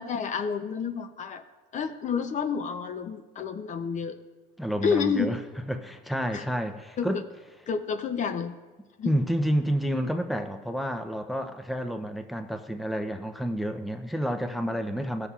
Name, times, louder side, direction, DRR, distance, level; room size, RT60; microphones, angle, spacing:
voice 1, 0.0-1.4 1.7-4.2 4.8-5.4 6.3-6.4 7.0-7.2 7.7-8.5 9.0-9.1, left 6 dB, 45° left, 9 dB, 0.6 m, -29 dB
voice 2, 4.6-5.4 5.7-7.2 9.1-15.3, equal, ahead, 7 dB, 0.5 m, -29 dB
16.5 x 6.7 x 2.4 m, 1.3 s
cardioid pair, 110°, 17 cm